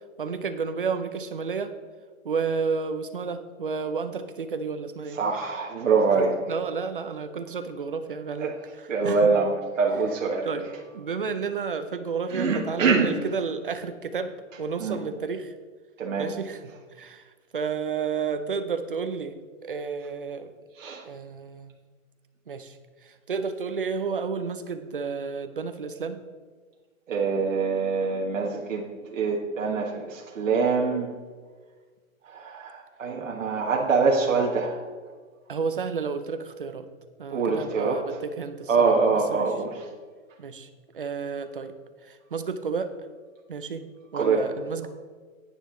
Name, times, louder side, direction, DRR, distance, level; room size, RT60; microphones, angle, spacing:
voice 1, 0.2-1.7 2.2-5.2 6.5-9.3 10.4-15.5 16.2-17.2 17.5-19.4 19.6-20.5 21.0-21.7 22.5-22.8 23.0-26.2 35.5-36.9 37.2-39.5 40.4-40.7 40.9-41.7 42.0-42.9 43.5-43.9 44.1-44.9, right 5 dB, 40° right, 9 dB, 0.6 m, -31 dB
voice 2, 5.2-6.3 8.4-8.5 8.9-9.5 9.8-10.5 12.3-13.1 14.8-15.0 16.0-16.3 20.8-21.0 27.1-28.8 29.1-31.1 32.3-34.8 37.3-38.0 38.7-39.8 44.1-44.4, right 4 dB, 65° right, -1 dB, 1.5 m, -24 dB
9.8 x 9.4 x 3.8 m, 1.5 s
hypercardioid pair, 180°, 41 cm